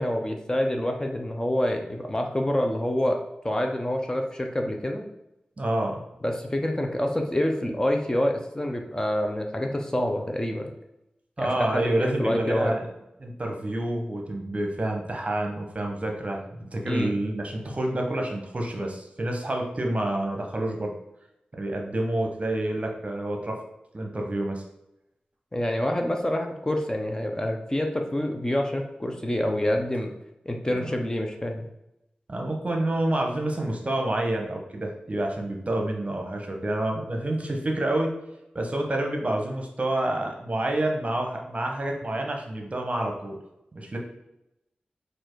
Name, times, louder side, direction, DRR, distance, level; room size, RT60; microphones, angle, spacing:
voice 1, 0.0-3.2 3.4-5.1 6.2-10.7 11.4-12.7 16.9-17.1 25.5-30.1 30.5-31.7, left 1 dB, 20° left, 3 dB, 0.6 m, -27 dB
voice 2, 5.6-6.0 11.4-12.9 13.2-20.9 21.6-23.6 23.9-24.6 30.7-30.9 32.3-38.1 38.5-43.4 43.7-44.0, right 1 dB, 45° right, 1 dB, 0.9 m, -28 dB
4.4 x 2.5 x 4.5 m, 0.88 s
wide cardioid pair, 55°, 3 cm